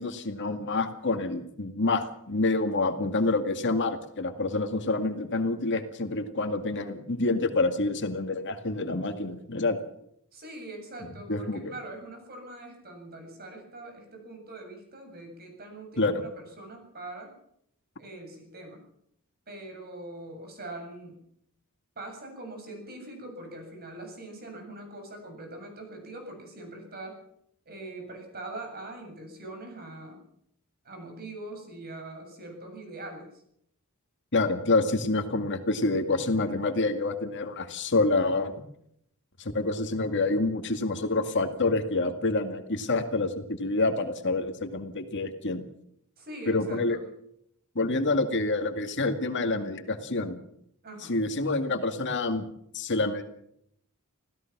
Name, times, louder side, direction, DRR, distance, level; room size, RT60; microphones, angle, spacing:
voice 1, 0.0-9.8 11.3-11.7 16.0-16.2 34.3-38.6 39.4-45.6 46.5-47.0 47.8-50.4 51.1-52.5 52.7-53.2, left 2 dB, 55° left, 6 dB, 2.1 m, -27 dB
voice 2, 10.3-17.3 18.0-18.8 19.5-21.2 22.0-27.2 27.7-30.2 30.8-33.4 46.2-47.0 50.8-51.1, right 2 dB, 45° right, 3 dB, 7.7 m, -42 dB
26.5 x 16.5 x 6.1 m, 0.72 s
head